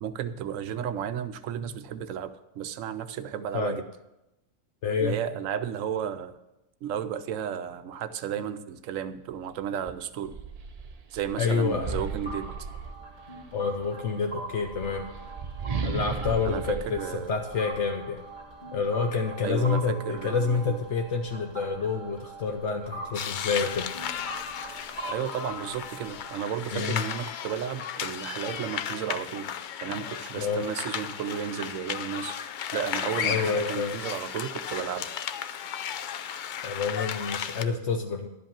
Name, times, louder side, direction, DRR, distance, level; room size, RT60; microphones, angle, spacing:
voice 1, 0.0-3.8 5.0-6.4 6.8-10.4 11.1-12.7 16.4-17.3 19.4-20.7 25.1-29.5 29.8-32.4 32.7-35.1, right 9 dB, 75° right, 11 dB, 1.0 m, -33 dB
voice 2, 4.8-5.2 11.4-12.1 13.5-15.0 15.8-18.2 18.7-23.9 26.7-27.0 30.4-30.7 33.2-33.9 36.6-38.3, left 5 dB, 65° left, 4 dB, 1.0 m, -28 dB
sound 1, 9.3-9.4 9.8-13.5 14.4-18.0, right 5 dB, 45° right, 0.5 m, -36 dB
sound 2, 11.5-26.3, right 2 dB, 35° left, 2.2 m, -42 dB
sound 3, 23.1-37.6, left 8 dB, 85° left, 0.4 m, -35 dB
11.5 x 5.3 x 7.2 m, 0.93 s
omnidirectional pair, 1.4 m